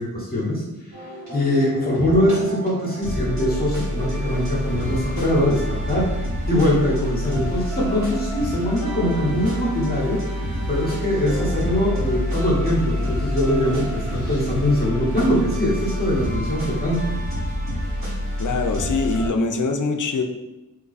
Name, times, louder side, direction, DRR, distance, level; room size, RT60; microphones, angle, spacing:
voice 1, 0.0-17.1, left 1 dB, 25° left, -6 dB, 0.9 m, -22 dB
sound 1, 0.9-19.3, equal, 50° right, 1.3 m, -27 dB
voice 2, 18.4-20.2, left 4 dB, 55° left, 5 dB, 0.5 m, -23 dB
3.1 x 2.3 x 4.0 m, 1.0 s
wide cardioid pair, 95°, 37 cm